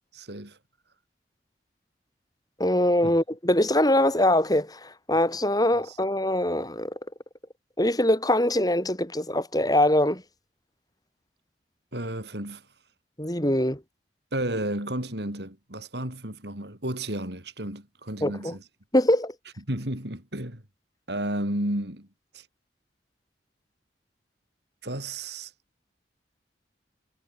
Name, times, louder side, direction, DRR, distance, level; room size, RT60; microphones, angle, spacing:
voice 1, 0.1-0.6 3.0-3.1 5.7-6.0 11.9-12.7 14.3-18.7 19.7-20.6 21.1-22.1 22.3-22.5 24.8-25.5, right 1 dB, 65° right, 6.8 m, -32 dB
voice 2, 2.6-6.9 7.8-10.2 13.2-13.8 18.2-18.5 18.9-19.3, left 1 dB, 20° left, 6.1 m, -23 dB
head